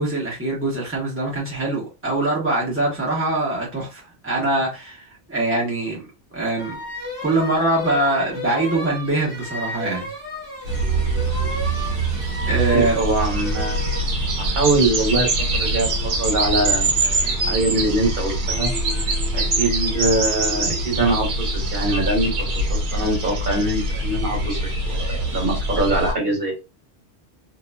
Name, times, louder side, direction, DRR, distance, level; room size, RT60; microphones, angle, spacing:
voice 1, 0.0-6.0 6.3-6.8 7.2-10.1 12.5-13.0, right 2 dB, 10° right, 1.2 m, -23 dB
sound 1, 6.6-14.1, equal, 25° left, 1.2 m, -33 dB
sound 2, 10.6-26.1, right 2 dB, 75° right, 1.1 m, -23 dB
voice 2, 12.7-13.8 14.5-18.7 19.3-26.7, right 2 dB, 50° right, 1.3 m, -23 dB
2.9 x 2.6 x 2.2 m
omnidirectional pair, 1.1 m